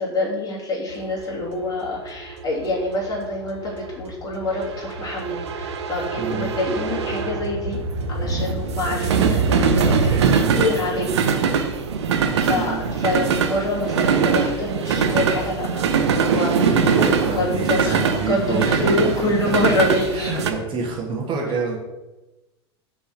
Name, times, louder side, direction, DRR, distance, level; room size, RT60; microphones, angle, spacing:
voice 1, 0.0-7.8 8.1-11.3 12.4-16.7 17.0-18.0 18.3-20.4, left 2 dB, 25° left, -4 dB, 2.4 m, -26 dB
sound 1, 1.0-20.5, right 5 dB, 75° right, 0.7 m, -22 dB
voice 2, 6.2-6.5 12.5-12.8 16.7-18.7 19.0-19.1 19.4-19.7 20.1-21.8, right 4 dB, 35° right, -2 dB, 1.6 m, -27 dB
5.7 x 3.8 x 5.8 m, 1.1 s
figure-of-eight pair, 80°, 14 cm